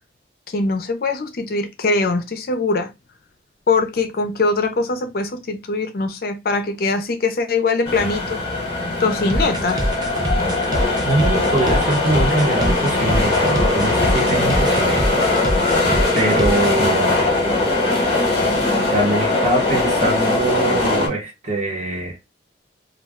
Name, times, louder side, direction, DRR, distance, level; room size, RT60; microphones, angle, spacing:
voice 1, 0.5-2.9 3.7-8.4 9.0-9.8, left 3 dB, 55° left, 0.5 m, -22 dB
sound 1, 7.8-21.1, left 2 dB, 30° left, 0.9 m, -20 dB
sound 2, 9.3-16.9, equal, 20° right, 0.4 m, -24 dB
voice 2, 11.0-15.5 16.1-17.5 18.9-22.2, right 2 dB, 35° right, 0.9 m, -23 dB
2.3 x 2.2 x 3.4 m
head